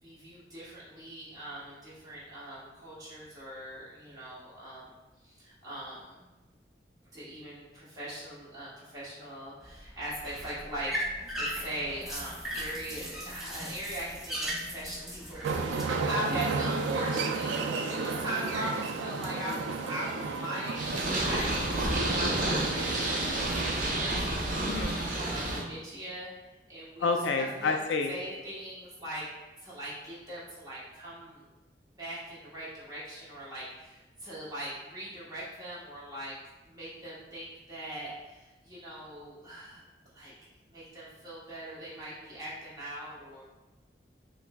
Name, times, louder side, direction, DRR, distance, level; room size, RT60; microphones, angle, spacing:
voice 1, 0.0-4.9 5.2-6.3 7.1-24.7 25.1-26.3 26.7-27.7 28.1-29.2 29.6-31.4 32.0-36.3 36.7-39.8 40.1-40.3 40.7-43.4, right 1 dB, 20° right, -9 dB, 1.1 m, -40 dB
sound 1, 9.6-15.8, equal, ahead, 0.5 m, -38 dB
sound 2, 15.4-23.9, right 4 dB, 90° right, 0.3 m, -33 dB
Purr, 20.8-25.6, right 1 dB, 45° right, 0.6 m, -30 dB
voice 2, 24.7-25.0 27.0-28.1, left 4 dB, 85° left, 4 dB, 0.4 m, -28 dB
5.7 x 2.0 x 2.2 m, 1.1 s
head